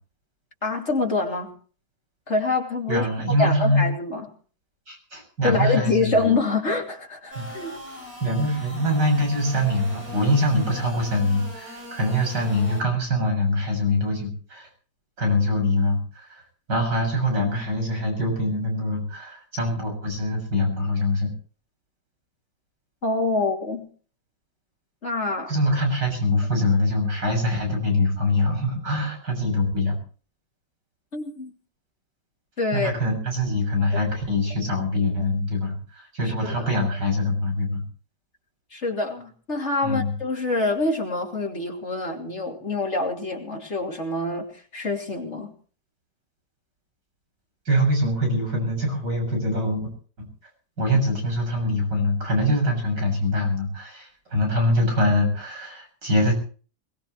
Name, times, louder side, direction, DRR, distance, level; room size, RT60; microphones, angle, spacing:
voice 1, 0.6-1.5 2.3-3.1 3.4-4.3 5.4-7.7 23.0-23.9 25.0-25.5 31.1-31.5 32.6-32.9 36.2-36.7 38.7-45.5, left 3 dB, 40° left, 2 dB, 3.2 m, -26 dB
voice 2, 2.9-3.8 4.9-6.3 7.4-7.5 8.2-14.7 15.2-16.4 16.7-21.3 25.5-30.0 32.7-37.8 39.8-40.1 47.7-49.9 50.2-50.3 50.8-56.3, left 1 dB, 80° right, 2 dB, 7.7 m, -24 dB
sound 1, 7.3-12.8, equal, 55° right, 7.6 m, -40 dB
22.0 x 20.5 x 3.2 m, 0.41 s
omnidirectional pair, 1.8 m